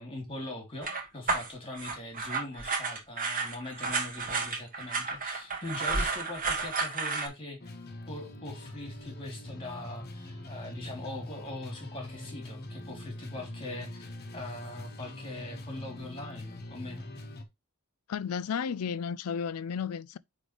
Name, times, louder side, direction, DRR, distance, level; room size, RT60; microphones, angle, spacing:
voice 1, 0.0-7.7 8.1-14.1 14.3-17.1, left 2 dB, 25° left, 3.1 m, -41 dB
sound 1, 0.8-7.3, right 4 dB, 40° right, 1.7 m, -32 dB
sound 2, 7.6-17.4, left 1 dB, 45° left, 1.4 m, -43 dB
voice 2, 18.1-20.2, left 7 dB, 85° left, 0.4 m, -33 dB
9.0 x 3.8 x 3.3 m
head